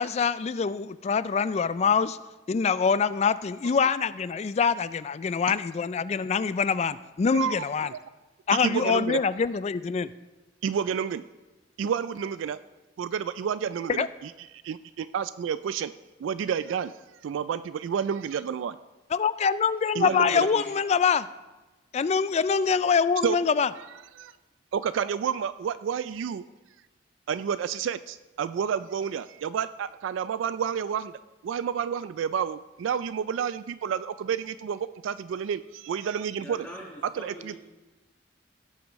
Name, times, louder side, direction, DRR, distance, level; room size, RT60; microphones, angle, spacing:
voice 1, 0.0-2.2 2.5-7.9 8.5-10.1 14.0-14.1 19.1-21.3 21.9-23.7, left 6 dB, 35° left, 15 dB, 0.3 m, -25 dB
voice 2, 7.3-7.6 7.9-8.0 8.6-9.2 10.6-11.2 11.8-12.6 13.0-14.3 14.6-15.9 16.2-16.9 17.2-18.8 20.0-20.5 23.2-23.4 24.2-24.3 24.7-26.4 27.3-31.1 31.4-36.7 37.2-37.6, right 7 dB, 90° right, 14 dB, 0.3 m, -30 dB
voice 3, 20.0-20.7 36.4-37.6, equal, 10° left, -3 dB, 1.4 m, -42 dB
16.5 x 8.0 x 3.1 m, 1.1 s
head